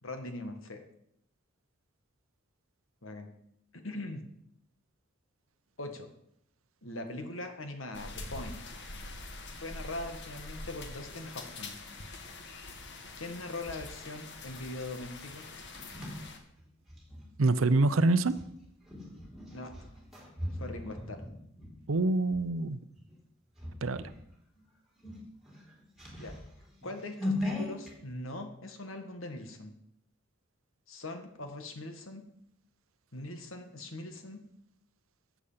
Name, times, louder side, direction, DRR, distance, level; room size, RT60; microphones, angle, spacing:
voice 1, 0.0-0.8 3.0-3.3 3.7-4.2 5.8-6.1 6.8-8.6 9.5-11.7 13.1-15.4 19.5-19.7 20.6-21.2 26.2-26.3 26.8-29.7 30.9-32.2 33.1-34.4, left 2 dB, 75° left, 6 dB, 1.7 m, -41 dB
sound 1, 7.9-16.4, left 2 dB, 60° left, 1.6 m, -45 dB
sound 2, 15.3-17.3 18.2-22.5 22.9-23.2 23.6-24.2 24.6-24.7 25.0-27.9, left 1 dB, ahead, 3.3 m, -39 dB
voice 2, 17.4-18.3 21.9-22.8 23.8-24.1, right 2 dB, 85° right, 14 dB, 0.7 m, -25 dB
14.0 x 8.1 x 5.7 m, 0.76 s
head